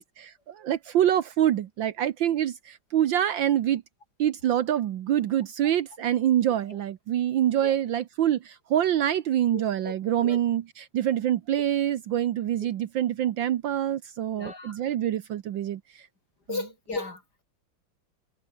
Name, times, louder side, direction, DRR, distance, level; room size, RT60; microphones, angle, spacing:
voice 1, 0.0-3.8 4.2-16.0, right 11 dB, 70° right, 1.6 m, -26 dB
voice 2, 9.5-9.9 10.2-10.4 12.6-12.7 14.4-14.8 16.5-17.2, left 3 dB, 50° left, 5.5 m, -35 dB
omnidirectional pair, 2.2 m